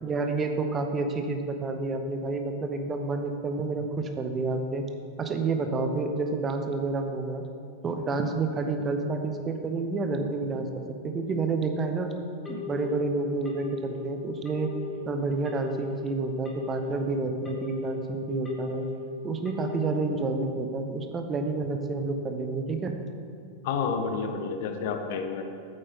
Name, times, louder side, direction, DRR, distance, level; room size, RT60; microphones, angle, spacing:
voice 1, 0.0-4.8 5.2-7.4 7.8-12.1 12.5-14.7 15.1-18.9 19.2-22.9, right 3 dB, 20° right, 6 dB, 0.8 m, -29 dB
Telephone, 12.5-13.0 13.5-14.0 14.5-15.0 15.5-16.0 16.5-17.0 17.5-18.0 18.5-19.0 19.5-20.0, left 6 dB, 15° left, 1.7 m, -37 dB
voice 2, 23.6-25.4, left 5 dB, 50° left, 6 dB, 0.7 m, -29 dB
8.5 x 8.2 x 3.7 m, 2.3 s
figure-of-eight pair, 90°, 0 cm